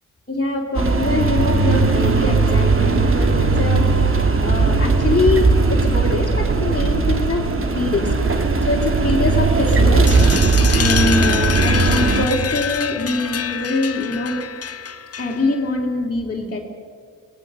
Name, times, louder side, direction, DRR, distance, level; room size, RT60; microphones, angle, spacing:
voice 1, 0.3-3.8 4.4-7.4 7.7-8.1 8.7-10.1 10.7-14.4 15.2-16.6, left 3 dB, 25° left, -5 dB, 3.6 m, -23 dB
sound 1, 0.7-12.3, right 3 dB, 35° right, 2.4 m, -17 dB
sound 2, 10.1-15.6, left 7 dB, 45° left, 1.4 m, -26 dB
22.5 x 19.5 x 6.4 m, 2.1 s
supercardioid pair, 55°, 35 cm